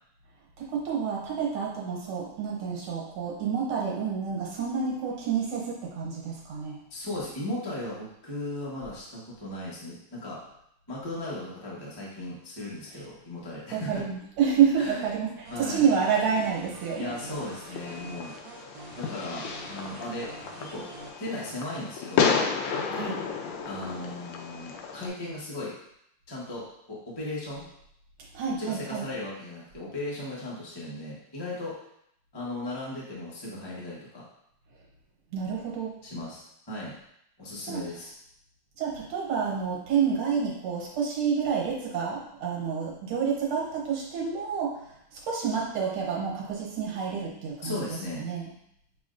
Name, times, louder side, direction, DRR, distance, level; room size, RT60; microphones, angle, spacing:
voice 1, 0.6-6.8 13.7-17.1 22.9-23.2 28.3-29.1 35.3-35.9 37.7-37.8 38.8-44.8 45.1-47.8 48.2-48.5, right 6 dB, 90° right, -3 dB, 1.9 m, -28 dB
voice 2, 6.9-10.4 10.9-14.0 14.8-15.0 15.5-15.9 17.0-18.3 19.0-20.3 20.6-20.9 21.2-22.3 23.7-25.7 26.3-27.6 28.6-31.7 32.3-34.2 36.0-36.9 37.4-38.1 47.6-48.3, left 1 dB, 25° left, -6 dB, 0.5 m, -36 dB
sound 1, 15.4-21.1, right 3 dB, 75° right, 1.3 m, -46 dB
Fireworks, 17.2-25.1, left 6 dB, 75° left, 1.2 m, -32 dB
6.0 x 3.1 x 2.5 m, 0.74 s
omnidirectional pair, 2.3 m